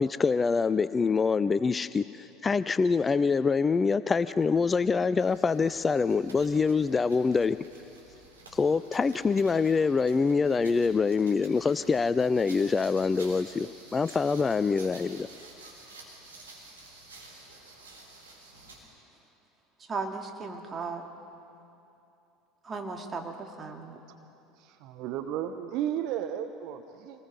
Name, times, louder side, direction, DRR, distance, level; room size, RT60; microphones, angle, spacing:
voice 1, 0.0-7.6 8.5-15.3, left 5 dB, 20° left, 15 dB, 0.4 m, -25 dB
sound 1, 5.2-18.9, right 2 dB, 75° right, 3.6 m, -51 dB
voice 2, 19.9-21.0 22.7-24.0, right 4 dB, 25° right, 3 dB, 2.4 m, -36 dB
voice 3, 24.6-27.2, right 10 dB, 50° right, 8 dB, 0.8 m, -34 dB
26.5 x 19.5 x 5.4 m, 2.8 s
figure-of-eight pair, 70°, 0 cm